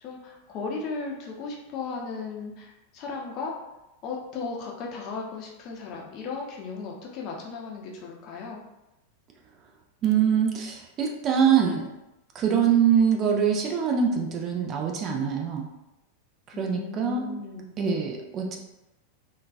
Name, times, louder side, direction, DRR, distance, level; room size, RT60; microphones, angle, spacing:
voice 1, 0.0-3.5 4.0-8.6 16.5-17.7, left 4 dB, 40° left, -1 dB, 0.6 m, -36 dB
voice 2, 10.0-11.9 12.3-15.7 16.6-17.3 17.8-18.6, right 7 dB, 30° right, 1 dB, 0.4 m, -24 dB
3.6 x 2.3 x 2.5 m, 0.94 s
figure-of-eight pair, 90°, 0 cm